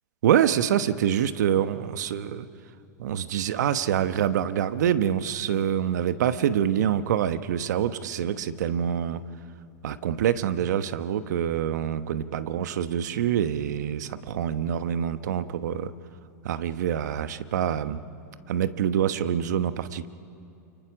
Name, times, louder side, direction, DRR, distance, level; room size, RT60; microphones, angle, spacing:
voice 1, 0.2-2.5 3.0-9.2 9.8-15.9 16.4-18.0 18.5-20.1, right 9 dB, 75° right, 12 dB, 1.1 m, -26 dB
29.5 x 23.5 x 6.2 m, 2.7 s
hypercardioid pair, 120°, 10 cm